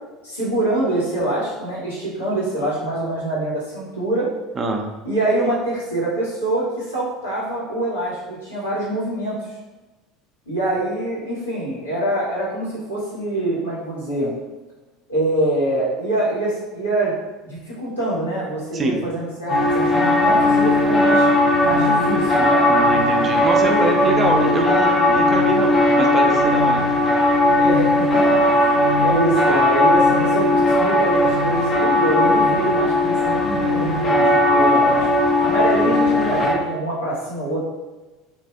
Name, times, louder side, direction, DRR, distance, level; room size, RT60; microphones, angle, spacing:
voice 1, 0.2-4.3 5.0-9.5 10.5-14.3 15.1-17.1 17.4-21.3 21.6-22.7 23.5-23.9 27.6-35.1 35.4-37.6, right 1 dB, 90° left, -9 dB, 1.2 m, -24 dB
sound 1, 19.5-36.6, left 1 dB, 30° left, 0.5 m, -17 dB
voice 2, 22.7-26.8, right 2 dB, 30° right, 3 dB, 0.5 m, -24 dB
3.3 x 2.4 x 2.3 m, 1.2 s
figure-of-eight pair, 70°, 0 cm